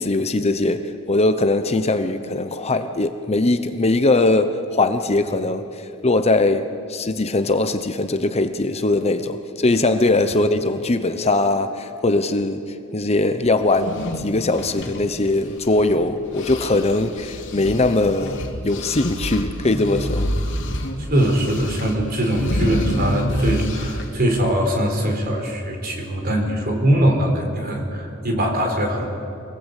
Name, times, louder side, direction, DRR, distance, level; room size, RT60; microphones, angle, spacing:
voice 1, 0.0-20.3, left 2 dB, 30° left, 9 dB, 0.9 m, -21 dB
sound 1, 13.7-16.0 16.3-24.2, equal, 60° left, 2.7 m, -28 dB
voice 2, 21.0-29.1, right 1 dB, 45° right, 3 dB, 4.4 m, -21 dB
26.0 x 19.5 x 8.3 m, 2.5 s
head